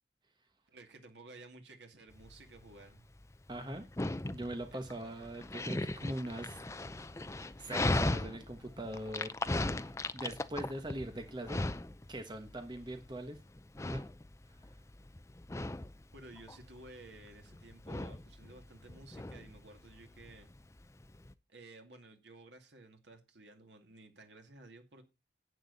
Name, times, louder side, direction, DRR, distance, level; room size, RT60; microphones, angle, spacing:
voice 1, 0.7-3.1 4.7-5.4 16.1-20.5 21.5-25.0, right 2 dB, 80° right, 5 dB, 2.5 m, -55 dB
Dog, 2.1-21.3, left 2 dB, 15° left, 0.5 m, -38 dB
voice 2, 3.5-3.8 4.3-6.6 7.3-9.4 10.1-11.6 12.1-13.4 13.8-14.0, right 1 dB, 25° right, 7 dB, 1.2 m, -41 dB
10.5 x 9.1 x 4.1 m, 0.26 s
head